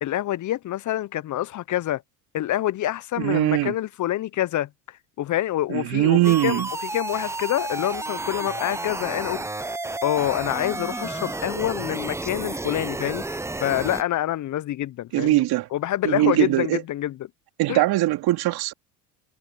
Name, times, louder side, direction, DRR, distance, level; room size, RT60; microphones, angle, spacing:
voice 1, 0.0-2.0 2.3-4.7 5.2-9.4 10.0-13.2 13.6-15.4 15.7-17.2 17.7-17.8, left 13 dB, 40° left, 1.0 m, -26 dB
voice 2, 3.2-3.8 5.7-6.7 15.1-15.7 16.0-16.8 17.6-18.7, right 16 dB, 50° right, 2.6 m, -21 dB
sound 1, 6.2-14.0, right 2 dB, 5° right, 0.8 m, -31 dB
hypercardioid pair, 75°, 47 cm